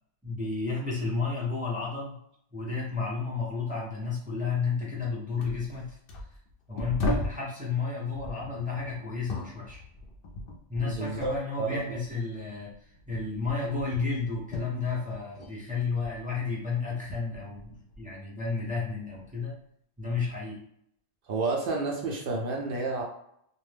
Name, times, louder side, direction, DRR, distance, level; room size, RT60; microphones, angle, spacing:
voice 1, 0.2-2.2 2.5-6.0 6.7-9.8 10.7-12.7 13.1-19.5 20.0-20.6, left 4 dB, 10° right, -6 dB, 0.4 m, -32 dB
sound 1, 5.4-7.5 8.1-11.5 11.7-15.6 15.8-18.2 18.6-19.3 20.1-20.3, left 1 dB, 60° left, 0.6 m, -38 dB
voice 2, 10.8-12.0 21.3-23.0, right 3 dB, 60° right, 0 dB, 0.6 m, -31 dB
2.5 x 2.1 x 3.3 m, 0.71 s
omnidirectional pair, 1.3 m